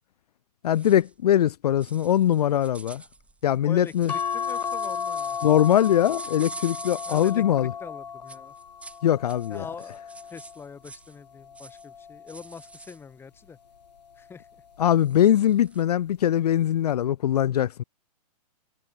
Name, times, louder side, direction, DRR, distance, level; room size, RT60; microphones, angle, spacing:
voice 1, 0.6-3.0 3.4-4.1 5.4-7.7 9.0-9.6 14.8-17.8, left 11 dB, 70° left, 0.5 m, -22 dB
sound 1, 0.7-1.1 1.8-7.4 8.3-9.0 9.3-11.2 11.5-11.9 12.3-13.0 14.9-15.8, right 3 dB, 5° right, 2.4 m, -45 dB
voice 2, 3.6-5.4 7.0-8.6 9.5-13.6 14.1-14.6, left 6 dB, 10° left, 2.6 m, -43 dB
sound 2, 4.1-10.7 11.3-12.7 14.0-14.4 14.7-14.8, left 7 dB, 90° left, 1.8 m, -35 dB
hypercardioid pair, 135°, 21 cm